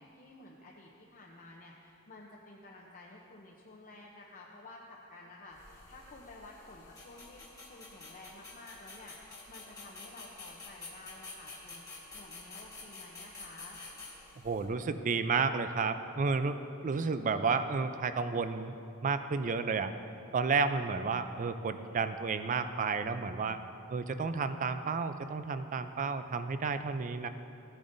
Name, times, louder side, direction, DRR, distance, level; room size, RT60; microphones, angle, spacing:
voice 1, 0.0-13.8, left 2 dB, 40° left, -2 dB, 0.7 m, -52 dB
sound 1, 5.5-14.7, left 3 dB, 15° left, 1.5 m, -49 dB
voice 2, 14.4-18.7 19.0-19.9 20.3-23.6 23.9-27.3, right 4 dB, 35° right, 10 dB, 0.4 m, -31 dB
15.0 x 8.7 x 2.6 m, 2.8 s
head